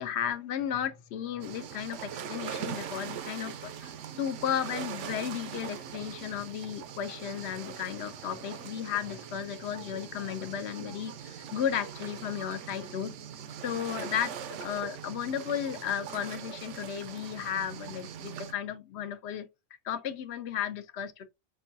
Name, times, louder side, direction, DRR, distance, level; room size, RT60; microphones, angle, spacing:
voice 1, 0.0-3.9 4.2-13.2 13.6-19.5 19.8-21.2, left 9 dB, 70° left, 0.8 m, -34 dB
sound 1, 1.4-18.5, right 8 dB, 90° right, 0.9 m, -41 dB
5.2 x 2.2 x 2.6 m
omnidirectional pair, 1.2 m